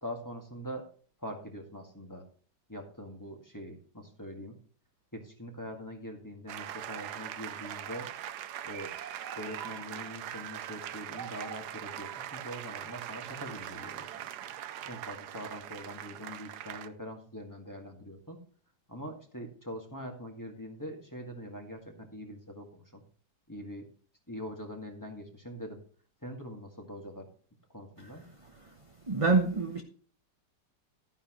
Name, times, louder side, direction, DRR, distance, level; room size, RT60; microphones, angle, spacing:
voice 1, 0.0-0.8 1.2-2.2 2.7-4.5 5.1-8.1 8.6-8.9 9.3-14.2 14.9-18.4 18.9-23.0 23.5-23.9 24.3-25.8 26.2-27.3 27.7-28.2, equal, 10° left, 1.7 m, -43 dB
sound 1, 6.5-16.9, right 11 dB, 70° right, 1.2 m, -41 dB
voice 2, 28.4-28.7 29.1-29.8, right 3 dB, 30° right, 0.7 m, -27 dB
12.0 x 9.9 x 3.1 m
omnidirectional pair, 1.9 m